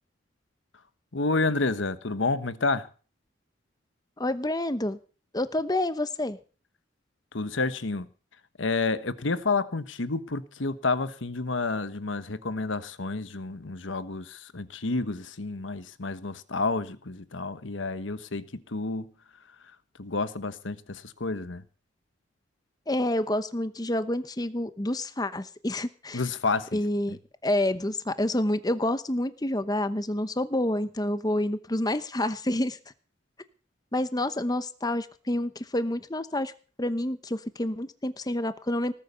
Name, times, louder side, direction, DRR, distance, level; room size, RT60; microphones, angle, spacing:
voice 1, 1.1-2.9 7.3-8.1 8.6-19.1 20.0-21.6 26.1-26.8, left 3 dB, 75° left, 1.2 m, -29 dB
voice 2, 4.2-5.0 5.3-6.4 22.9-26.2 26.7-32.8 33.9-36.5 36.8-38.9, left 1 dB, 20° left, 0.9 m, -28 dB
19.0 x 8.8 x 6.9 m
head